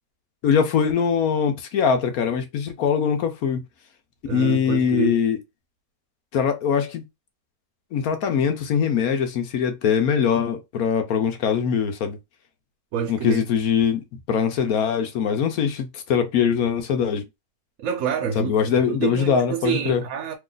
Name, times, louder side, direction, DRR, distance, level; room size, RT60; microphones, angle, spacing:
voice 1, 0.4-3.6 4.3-5.4 6.3-7.0 7.9-12.2 13.1-17.2 18.4-20.0, left 7 dB, 65° left, 1.1 m, -22 dB
voice 2, 4.2-5.2 12.9-13.5 17.8-20.3, right 7 dB, 65° right, 0.9 m, -27 dB
3.0 x 2.4 x 3.8 m
omnidirectional pair, 1.8 m